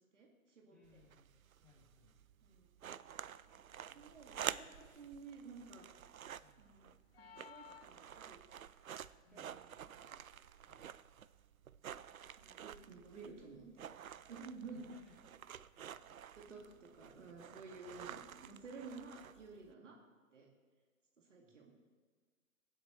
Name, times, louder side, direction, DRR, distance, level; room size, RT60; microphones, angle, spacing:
voice 1, 0.1-1.0 2.4-2.7 3.5-3.6 3.9-4.7 4.9-5.9 6.6-6.9 7.2-8.4 9.3-10.1 12.4-14.8 16.4-16.6 17.0-20.0 20.3-20.5 21.2-21.7, right 4 dB, 60° right, 0 dB, 2.4 m, -53 dB
voice 2, 0.7-1.3 1.6-2.1 3.7-4.8 6.4-6.6 9.2-9.8 10.7-10.9 14.6-16.2 16.5-16.6 17.6-18.1 19.8-20.0 21.4-21.6, left 3 dB, ahead, -8 dB, 3.5 m, -68 dB
sound 1, 0.8-19.7, right 9 dB, 75° right, 0.5 m, -50 dB
sound 2, 7.1-8.6, left 7 dB, 45° left, 0.5 m, -57 dB
22.0 x 8.1 x 3.3 m, 1.5 s
figure-of-eight pair, 135°, 42 cm